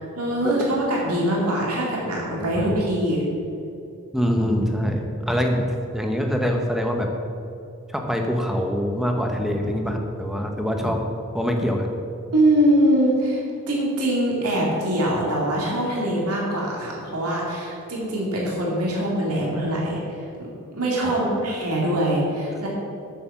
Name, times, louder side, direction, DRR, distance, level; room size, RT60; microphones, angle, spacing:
voice 1, 0.0-3.2 12.3-22.7, right 1 dB, 85° right, -3 dB, 2.5 m, -23 dB
voice 2, 2.3-2.7 4.1-5.6 5.9-7.1 7.9-11.0 11.3-11.9 21.0-21.4, equal, ahead, 3 dB, 0.9 m, -24 dB
9.0 x 6.8 x 7.2 m, 2.6 s
head